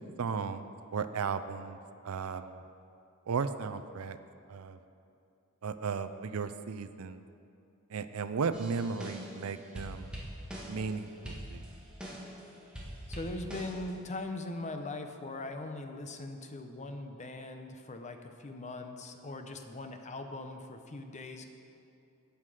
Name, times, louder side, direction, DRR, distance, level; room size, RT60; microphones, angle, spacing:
voice 1, 0.2-1.8 2.0-2.6 3.3-4.2 4.5-4.8 5.6-7.2 7.9-10.1 10.7-11.7, right 5 dB, 70° right, 11 dB, 0.5 m, -35 dB
sound 1, 8.5-9.4 9.8-11.0 11.3-12.4 12.8-13.9, equal, 5° right, 1.7 m, -43 dB
voice 2, 13.1-21.5, left 2 dB, 30° left, 6 dB, 0.7 m, -41 dB
17.0 x 5.8 x 4.9 m, 2.6 s
head